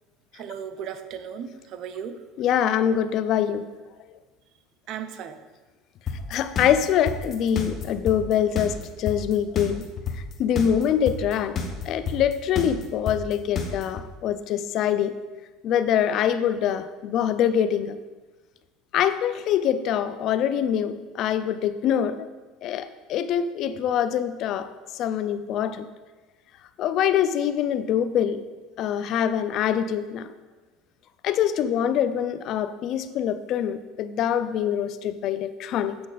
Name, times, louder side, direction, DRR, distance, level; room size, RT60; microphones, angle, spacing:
voice 1, 0.3-2.2 4.9-5.4, right 8 dB, 55° right, 9 dB, 0.7 m, -36 dB
voice 2, 2.4-3.7 6.3-9.9 10.4-11.6 11.9-15.2 15.6-18.0 18.9-22.3 22.6-24.7 24.9-25.9 26.8-28.4 28.8-30.3 31.2-36.0, left 9 dB, 55° left, 12 dB, 0.5 m, -24 dB
sound 1, 6.1-14.0, left 5 dB, 35° left, 1.1 m, -29 dB
8.6 x 6.2 x 4.0 m, 1.2 s
supercardioid pair, 110°, 0 cm